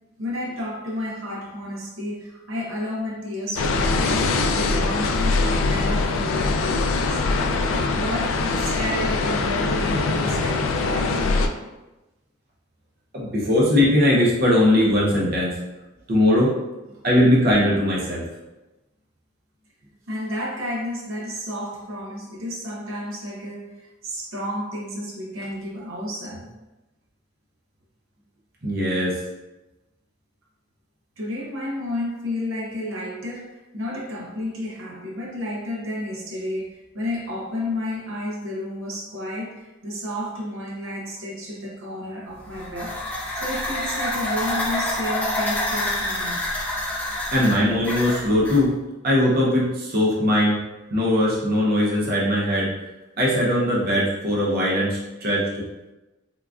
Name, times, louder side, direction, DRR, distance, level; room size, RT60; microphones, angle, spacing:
voice 1, 0.2-7.2 7.9-11.7 16.9-17.1 19.8-26.5 31.2-43.0 43.3-46.5, left 1 dB, 90° right, -3 dB, 0.7 m, -31 dB
sound 1, 3.6-11.5, left 3 dB, 85° left, 0.3 m, -22 dB
voice 2, 13.1-15.5 16.1-16.5 17.0-18.2 28.6-29.1 47.3-48.7 49.0-50.6 50.9-52.7 53.2-55.4, left 1 dB, 50° right, -5 dB, 0.7 m, -20 dB
sound 2, 42.4-48.6, left 1 dB, 10° left, 0.4 m, -27 dB
3.7 x 2.3 x 2.4 m, 1.1 s
head